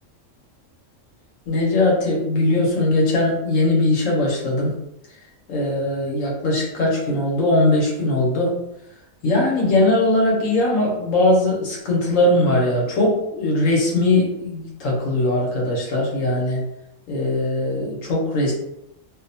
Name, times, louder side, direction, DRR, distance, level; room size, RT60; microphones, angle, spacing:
voice 1, 1.5-4.8 5.5-8.6 9.2-16.6 17.1-18.5, left 2 dB, 85° left, -3 dB, 1.2 m, -20 dB
2.7 x 2.1 x 2.7 m, 0.85 s
omnidirectional pair, 1.3 m